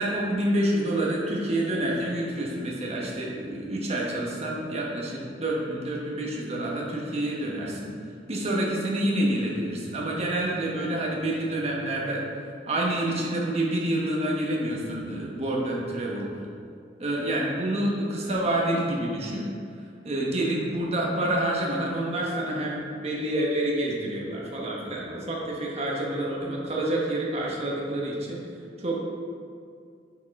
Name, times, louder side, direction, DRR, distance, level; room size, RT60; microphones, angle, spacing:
voice 1, 0.0-7.9 8.3-12.2 12.7-16.4 17.0-19.5 20.0-28.4 28.8-29.1, right 1 dB, 35° right, -3 dB, 1.2 m, -28 dB
8.1 x 5.4 x 3.6 m, 2.3 s
head